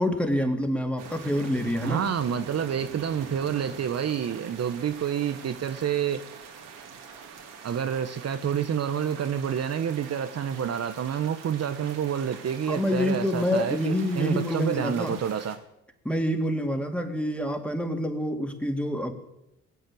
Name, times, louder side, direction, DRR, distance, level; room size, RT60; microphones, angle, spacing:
voice 1, 0.0-2.0 12.7-15.2 16.0-19.1, left 1 dB, 5° left, 4 dB, 2.9 m, -27 dB
sound 1, 1.0-15.6, right 6 dB, 75° right, 2.7 m, -44 dB
voice 2, 1.8-6.2 7.6-15.6, right 8 dB, 50° right, 9 dB, 1.1 m, -28 dB
20.5 x 8.0 x 7.7 m, 0.87 s
supercardioid pair, 60°, 32 cm